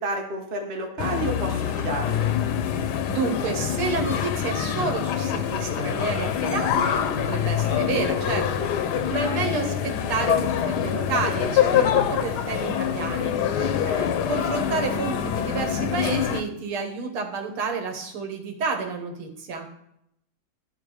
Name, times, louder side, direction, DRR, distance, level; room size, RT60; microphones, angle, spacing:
voice 1, 0.0-2.3 13.5-14.1, right 2 dB, 35° right, 2 dB, 1.0 m, -31 dB
sound 1, 1.0-16.4, left 9 dB, 70° left, 1.0 m, -25 dB
voice 2, 3.1-8.7 9.1-13.3 14.3-19.7, right 4 dB, 90° right, 4 dB, 2.0 m, -30 dB
11.5 x 4.0 x 4.8 m, 0.77 s
omnidirectional pair, 2.3 m